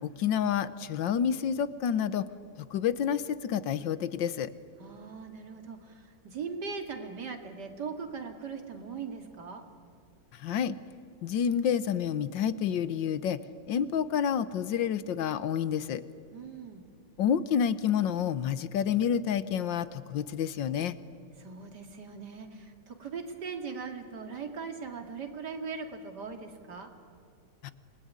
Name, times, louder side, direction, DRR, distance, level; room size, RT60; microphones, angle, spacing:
voice 1, 0.0-2.3 2.6-4.5 10.3-10.8 11.2-13.4 13.7-16.0 17.2-20.9 27.6-27.7, left 8 dB, 80° left, 15 dB, 1.6 m, -29 dB
voice 2, 4.8-9.6 16.3-16.9 21.4-26.9, right 5 dB, 65° right, 5 dB, 2.9 m, -40 dB
28.0 x 20.0 x 9.6 m, 2.6 s
omnidirectional pair, 2.0 m